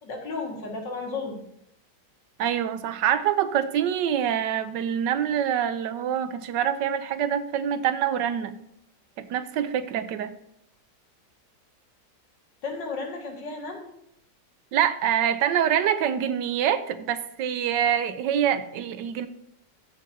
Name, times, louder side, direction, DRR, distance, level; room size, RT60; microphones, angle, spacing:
voice 1, 0.0-1.4 12.6-13.9, left 3 dB, 85° left, 1 dB, 2.5 m, -33 dB
voice 2, 2.4-8.6 9.2-10.3 14.7-19.3, right 9 dB, 90° right, 12 dB, 1.4 m, -25 dB
15.0 x 7.1 x 2.7 m, 0.77 s
omnidirectional pair, 1.9 m